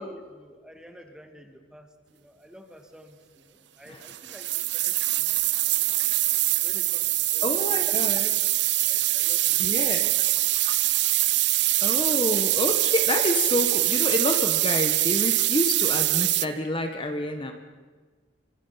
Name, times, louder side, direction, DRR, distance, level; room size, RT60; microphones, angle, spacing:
voice 1, 0.0-6.0 6.5-8.4 8.8-10.1, equal, 5° right, 5 dB, 2.1 m, -50 dB
sound 1, 4.0-16.5, right 17 dB, 65° right, 0.7 m, -24 dB
voice 2, 7.4-8.3 9.6-10.1 11.8-17.5, left 1 dB, 30° left, 5 dB, 1.6 m, -28 dB
26.5 x 25.0 x 5.9 m, 1.4 s
head